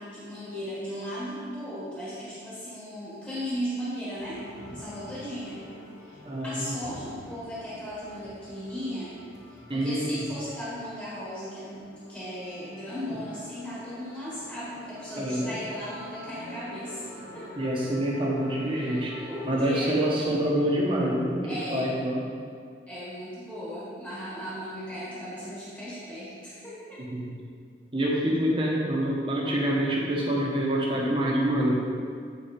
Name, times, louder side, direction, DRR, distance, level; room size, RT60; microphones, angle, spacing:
voice 1, 0.0-4.4 4.7-5.6 6.0-6.2 6.4-9.1 9.5-11.8 12.1-17.0 17.3-17.5 18.7-20.0 21.4-21.9 22.9-27.0, equal, 10° left, -10 dB, 1.4 m, -36 dB
sound 1, 4.2-20.4, left 1 dB, 85° left, 1.0 m, -47 dB
voice 2, 6.2-6.8 9.7-10.2 15.2-15.5 17.6-21.4 21.7-22.2 27.0-27.3 27.9-31.8, right 1 dB, 30° right, -3 dB, 1.1 m, -26 dB
8.4 x 4.3 x 4.3 m, 2.1 s
head